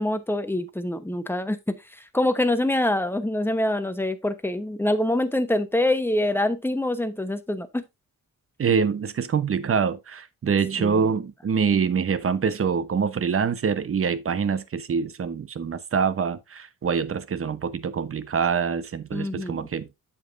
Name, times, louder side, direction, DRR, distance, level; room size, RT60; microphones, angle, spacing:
voice 1, 0.0-7.8 10.8-11.1 19.1-19.6, left 1 dB, 5° left, 0.9 m, -25 dB
voice 2, 8.6-19.9, right 6 dB, 45° right, 0.8 m, -25 dB
8.2 x 7.1 x 2.5 m
wide cardioid pair, 110°, 31 cm